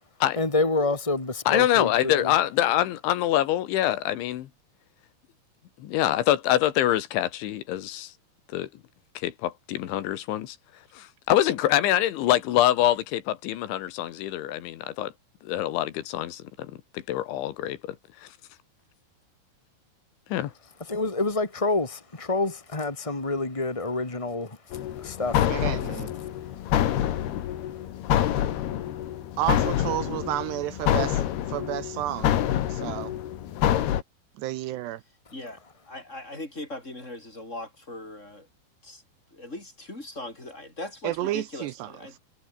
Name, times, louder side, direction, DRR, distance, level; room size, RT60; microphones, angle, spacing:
voice 1, 0.3-2.4 20.8-25.5 25.9-26.0 26.4-26.7 27.6-27.9, left 3 dB, 50° left, 0.4 m, -28 dB
voice 2, 1.5-4.5 5.8-8.1 8.5-8.7 9.2-10.6 11.0-15.1 15.4-16.7 17.1-17.8 20.3-20.5, left 13 dB, 85° left, 3.9 m, -25 dB
sound 1, 24.7-34.0, left 11 dB, 65° left, 3.5 m, -27 dB
voice 3, 25.4-26.1 29.4-32.4 32.7-33.1 34.4-35.0 41.0-42.2, right 14 dB, 80° right, 2.8 m, -31 dB
voice 4, 35.9-38.5 38.8-39.0 39.3-42.2, left 2 dB, 15° left, 6.8 m, -39 dB
omnidirectional pair, 5.4 m